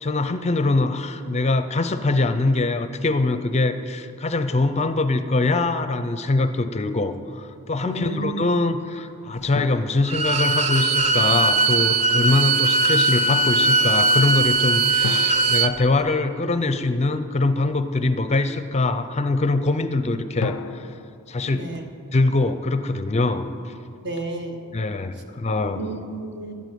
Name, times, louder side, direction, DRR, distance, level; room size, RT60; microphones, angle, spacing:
voice 1, 0.0-20.6 21.3-21.7 22.1-23.5 24.7-25.8, left 2 dB, 30° left, 10 dB, 0.5 m, -23 dB
voice 2, 7.8-8.4 21.4-21.8 24.0-24.6 25.7-26.5, right 2 dB, 55° right, 5 dB, 1.3 m, -32 dB
sound 1, 9.5-11.2 15.0-16.9 20.4-22.7, left 5 dB, 85° left, 0.4 m, -36 dB
Bowed string instrument, 10.0-15.7, right 3 dB, 30° right, 0.6 m, -20 dB
12.5 x 8.2 x 9.2 m, 2.3 s
head